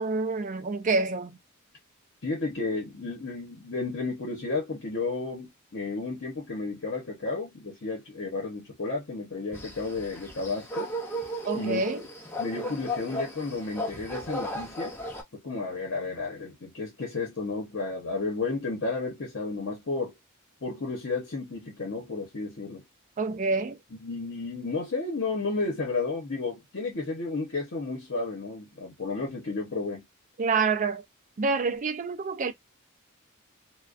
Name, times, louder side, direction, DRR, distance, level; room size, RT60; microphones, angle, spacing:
voice 1, 0.0-1.4 11.4-12.0 23.2-23.8 30.4-31.0 31.4-32.5, right 4 dB, 40° right, 0.4 m, -27 dB
voice 2, 2.2-10.9 11.5-11.8 12.4-14.9 15.3-20.1 20.6-22.8 23.9-30.0, left 3 dB, 55° left, 0.9 m, -32 dB
sound 1, 9.5-15.2, equal, 10° left, 0.6 m, -35 dB
2.4 x 2.2 x 2.4 m
head